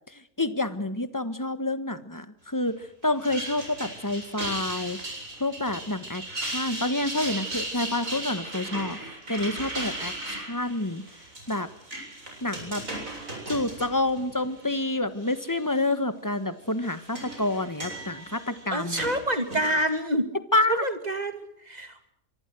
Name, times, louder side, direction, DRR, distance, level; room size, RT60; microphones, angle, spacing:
voice 1, 0.1-5.0 5.4-9.0 9.3-11.0 11.5-11.7 12.4-12.8 13.5-19.0 20.5-20.8, left 2 dB, 15° left, 12 dB, 1.4 m, -28 dB
sound 1, 3.0-14.8 15.2-15.8 16.6-19.8, right 1 dB, 80° right, 7.9 m, -37 dB
voice 2, 18.7-20.3 20.7-22.1, right 1 dB, 30° right, 9 dB, 2.6 m, -27 dB
25.5 x 24.0 x 6.3 m, 0.71 s
omnidirectional pair, 1.4 m